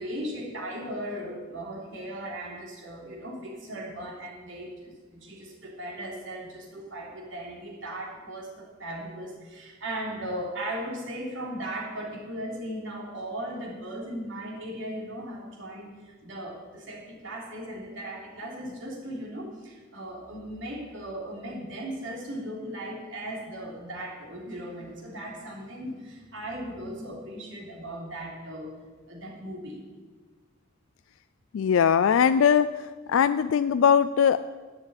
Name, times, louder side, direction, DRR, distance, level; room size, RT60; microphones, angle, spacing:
voice 1, 0.0-28.7 29.1-29.8, right 1 dB, 65° right, -2 dB, 3.3 m, -37 dB
voice 2, 31.5-32.7 33.1-34.4, left 7 dB, 80° left, 12 dB, 0.3 m, -20 dB
11.0 x 6.6 x 8.9 m, 1.4 s
head